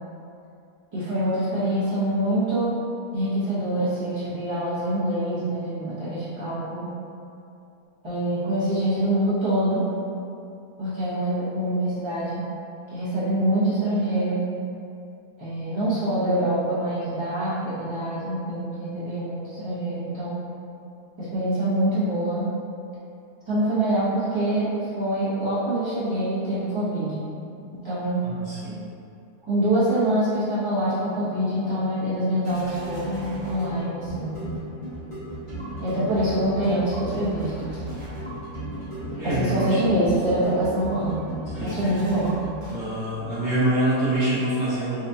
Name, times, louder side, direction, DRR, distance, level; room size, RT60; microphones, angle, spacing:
voice 1, 0.9-2.8 3.1-6.9 8.0-9.9 10.8-12.4 12.9-14.4 15.4-20.4 21.2-22.5 23.5-27.2 27.7-28.2 29.5-34.5 35.8-37.7 39.2-41.2 41.6-42.4, right 1 dB, 20° right, -13 dB, 0.8 m, -25 dB
voice 2, 28.2-28.8 39.1-39.8 41.6-41.9 42.7-45.1, right 1 dB, 55° right, -14 dB, 1.2 m, -25 dB
sound 1, 30.7-43.2, right 1 dB, 25° left, 0.9 m, -36 dB
3.9 x 2.4 x 2.6 m, 2.6 s
omnidirectional pair, 1.8 m